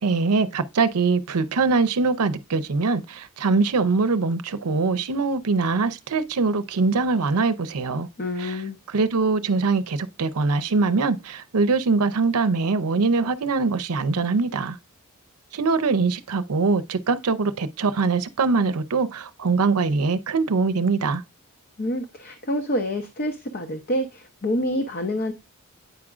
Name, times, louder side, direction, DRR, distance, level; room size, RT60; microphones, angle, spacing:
voice 1, 0.0-8.1 8.4-8.6 8.9-14.8 15.5-21.2, right 4 dB, 80° right, 0.6 m, -22 dB
voice 2, 8.2-8.8 21.8-25.3, left 1 dB, 45° left, 0.7 m, -27 dB
9.0 x 4.9 x 2.4 m
head